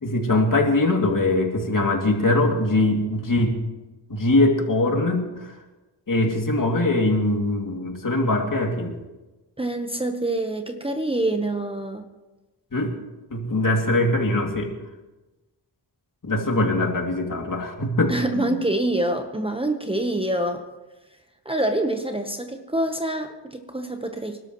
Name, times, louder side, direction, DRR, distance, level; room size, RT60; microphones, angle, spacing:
voice 1, 0.0-3.6 4.1-5.5 6.1-8.9 12.7-12.9 13.3-14.7 16.2-18.5, left 2 dB, 50° left, 1 dB, 2.6 m, -22 dB
voice 2, 9.6-12.1 18.1-20.7 21.4-24.4, right 1 dB, 15° right, 5 dB, 1.1 m, -26 dB
26.5 x 12.5 x 3.1 m, 1.1 s
wide cardioid pair, 95°, 43 cm